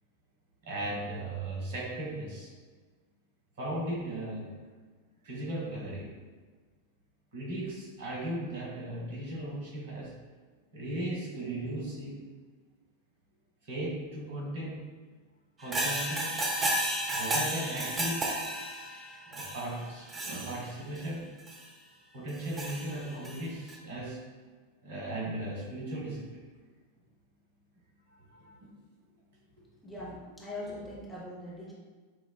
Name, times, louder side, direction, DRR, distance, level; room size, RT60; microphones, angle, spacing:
voice 1, 0.6-2.5 3.6-4.5 5.2-6.1 7.3-10.1 10.7-12.2 13.7-14.8 15.6-16.4 17.1-18.3 19.3-21.3 22.1-24.2 24.8-26.4 28.3-28.6, right 1 dB, 55° right, -4 dB, 1.2 m, -37 dB
sound 1, 15.6-21.1 21.5-21.6 22.3-23.4 23.7-23.8, right 1 dB, 20° right, 0.6 m, -33 dB
voice 2, 29.8-31.7, left 1 dB, 5° left, -6 dB, 0.8 m, -41 dB
5.9 x 2.3 x 2.2 m, 1.4 s
figure-of-eight pair, 90°, 0 cm